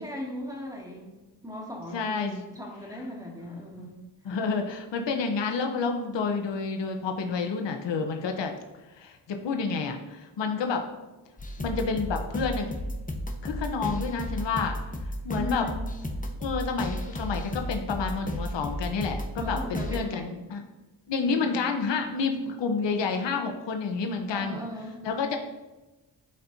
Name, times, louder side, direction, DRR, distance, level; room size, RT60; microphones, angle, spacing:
voice 1, 0.0-4.0 15.4-15.8 19.4-20.3 21.2-21.6 24.3-25.0, equal, 10° right, -2 dB, 2.4 m, -38 dB
voice 2, 1.9-2.5 3.8-3.9 4.2-8.5 8.9-10.8 11.6-12.7 13.4-14.7 15.0-15.7 16.4-20.6 21.1-24.6 25.0-25.4, left 4 dB, 70° left, 4 dB, 1.0 m, -29 dB
sound 1, 11.4-20.0, equal, 20° left, 1.0 m, -33 dB
11.5 x 4.4 x 2.8 m, 1.1 s
cardioid pair, 65°, 45 cm